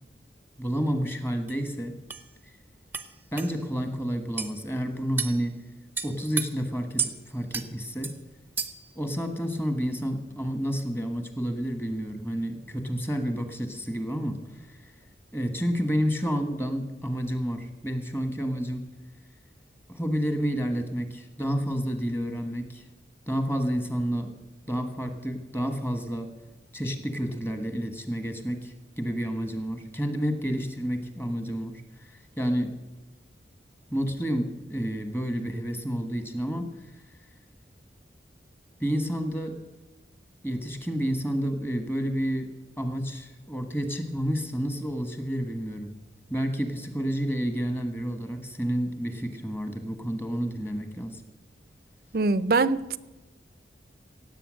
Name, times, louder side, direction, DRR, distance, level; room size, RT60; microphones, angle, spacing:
voice 1, 0.6-2.0 3.3-5.6 6.0-8.1 8.9-14.4 14.7-14.8 15.3-18.8 19.9-22.8 23.3-24.3 24.7-26.3 26.7-32.7 33.9-36.6 38.8-39.5 40.4-42.5 42.8-45.9 46.3-51.2, equal, 10° left, 1.3 m, -30 dB
sound 1, 1.5-1.6 2.1-2.2 2.9-3.1 3.4-3.5 4.4-4.5 5.2-5.4 6.0-6.5 7.0-7.1 7.5-7.7 8.0-8.2 8.6-8.9, right 6 dB, 10° right, 0.7 m, -31 dB
voice 2, 52.1-53.0, right 3 dB, 55° right, 0.5 m, -23 dB
17.0 x 7.9 x 6.3 m
head